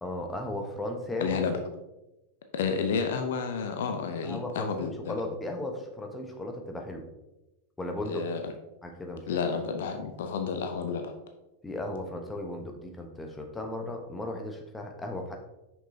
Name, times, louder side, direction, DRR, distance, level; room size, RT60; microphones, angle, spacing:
voice 1, 0.0-1.4 4.2-7.0 7.8-8.2 8.8-9.4 11.6-15.4, left 1 dB, 10° left, 2 dB, 1.0 m, -36 dB
voice 2, 1.2-1.6 2.5-5.1 8.1-8.4 9.3-11.1, left 5 dB, 55° left, 6 dB, 0.6 m, -30 dB
6.2 x 6.0 x 2.8 m, 0.97 s
figure-of-eight pair, 90°, 0 cm